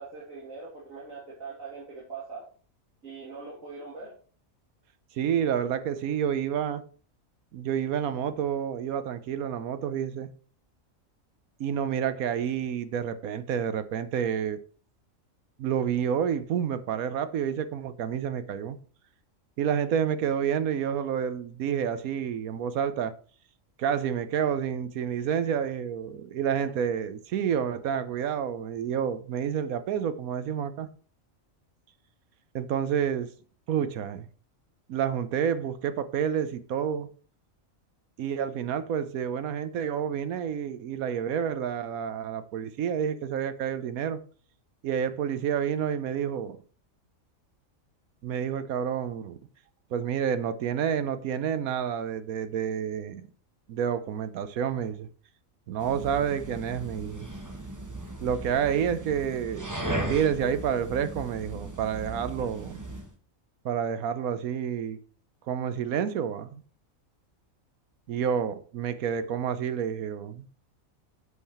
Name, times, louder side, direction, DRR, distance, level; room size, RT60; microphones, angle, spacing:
voice 1, 0.0-2.5 3.0-4.1 26.6-26.7 62.3-62.4, right 4 dB, 75° right, 2.6 m, -42 dB
voice 2, 5.1-6.8 7.5-10.3 11.6-14.6 15.6-18.8 19.6-23.1 23.8-30.9 32.5-33.3 33.7-34.3 34.9-37.1 38.2-44.2 44.8-46.6 48.2-49.4 49.9-53.3 53.7-55.1 55.7-57.3 58.2-59.7 60.1-62.8 63.6-65.0 65.5-66.6 68.1-70.5, right 8 dB, 90° right, 1.2 m, -29 dB
sound 1, 55.8-63.1, right 1 dB, 15° right, 1.0 m, -37 dB
8.1 x 5.7 x 4.3 m
omnidirectional pair, 1.4 m